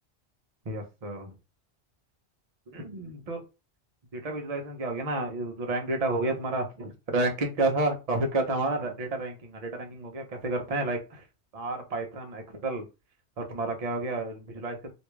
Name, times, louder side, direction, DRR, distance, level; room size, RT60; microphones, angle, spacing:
voice 1, 0.6-1.3 2.7-3.4 4.1-11.2 11.5-12.9 13.4-14.9, right 2 dB, 40° right, 3 dB, 0.7 m, -30 dB
3.4 x 2.6 x 3.1 m, 0.29 s
omnidirectional pair, 1.2 m